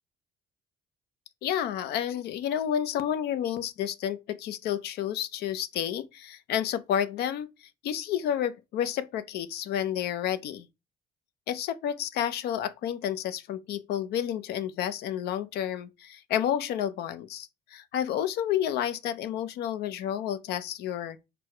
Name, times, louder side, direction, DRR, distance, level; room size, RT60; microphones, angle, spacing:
voice 1, 1.4-7.5 7.8-10.7 11.5-21.2, left 10 dB, 70° left, 0.5 m, -30 dB
4.6 x 2.0 x 4.3 m
cardioid pair, 110°, 17 cm